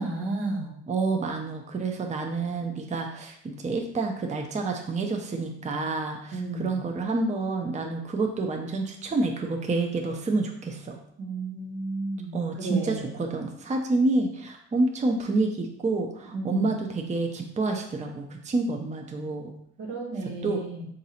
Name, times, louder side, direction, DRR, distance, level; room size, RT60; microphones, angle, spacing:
voice 1, 0.0-0.8 6.3-6.8 11.2-13.1 16.3-16.8 19.8-20.9, right 2 dB, 80° right, -2 dB, 1.3 m, -33 dB
voice 2, 0.9-11.0 12.3-19.5 20.4-20.6, right 3 dB, 25° right, 3 dB, 0.5 m, -28 dB
3.9 x 2.6 x 4.2 m, 0.69 s
cardioid pair, 90°, 30 cm